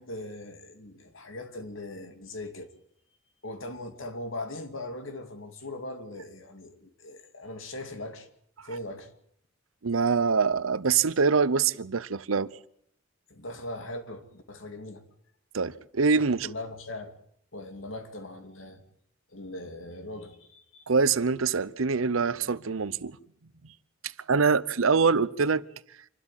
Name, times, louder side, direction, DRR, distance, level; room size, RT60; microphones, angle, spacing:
voice 1, 0.0-2.7 3.4-8.3 8.6-9.1 13.3-15.1 16.1-17.1 17.5-18.8 19.3-20.8, left 1 dB, 75° left, 2.5 m, -40 dB
voice 2, 9.8-12.5 15.5-16.5 20.9-23.2 24.3-25.6, right 5 dB, 90° right, 0.8 m, -24 dB
27.0 x 12.5 x 9.0 m
head